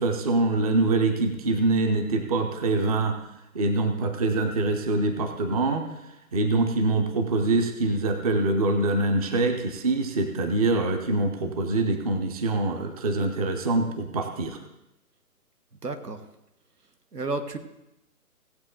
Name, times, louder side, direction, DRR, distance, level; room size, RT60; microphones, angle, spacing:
voice 1, 0.0-3.2 3.5-5.8 6.3-14.6, right 2 dB, 25° right, 6 dB, 0.7 m, -24 dB
voice 2, 15.8-16.2 17.1-17.6, right 2 dB, 80° right, 6 dB, 1.6 m, -31 dB
17.0 x 7.7 x 3.8 m, 0.90 s
figure-of-eight pair, 145°, 47 cm